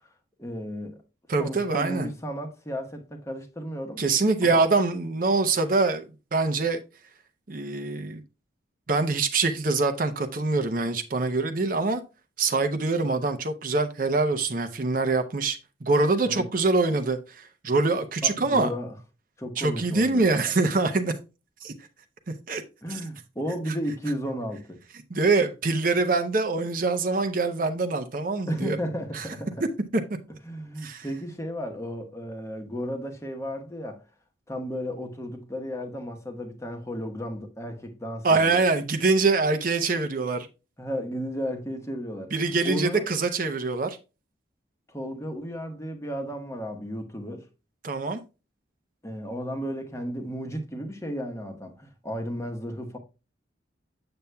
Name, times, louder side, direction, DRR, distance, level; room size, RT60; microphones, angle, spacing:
voice 1, 0.4-1.0 1.4-4.1 4.4-4.7 16.2-16.5 18.2-18.9 19.4-20.5 22.8-24.8 28.5-29.6 30.4-34.0 34.5-38.6 40.8-42.3 42.6-43.1 44.9-47.5 49.0-53.0, equal, 15° left, 1.0 m, -34 dB
voice 2, 1.3-2.1 4.0-6.8 7.5-8.2 8.9-12.0 12.4-18.7 19.6-21.1 21.6-21.7 22.5-22.6 25.1-28.8 29.1-29.3 30.8-31.1 38.2-40.5 42.3-44.0 47.8-48.2, right 3 dB, 45° right, 0.7 m, -24 dB
7.9 x 7.0 x 2.2 m
head